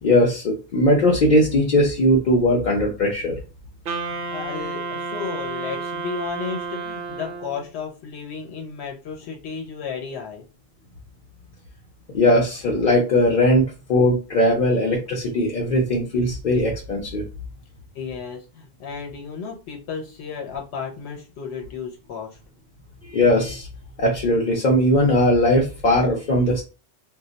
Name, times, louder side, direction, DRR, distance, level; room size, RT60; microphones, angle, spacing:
voice 1, 0.0-3.4 12.1-13.6 13.9-17.3 23.0-23.7 24.0-26.6, left 1 dB, 55° left, -1 dB, 0.6 m, -19 dB
Wind instrument woodwind instrument, 3.9-7.7, right 4 dB, 60° right, 0.8 m, -31 dB
voice 2, 4.1-10.4 17.9-22.4, left 6 dB, 85° left, 0 dB, 0.9 m, -33 dB
2.2 x 2.1 x 3.8 m, 0.33 s
omnidirectional pair, 1.1 m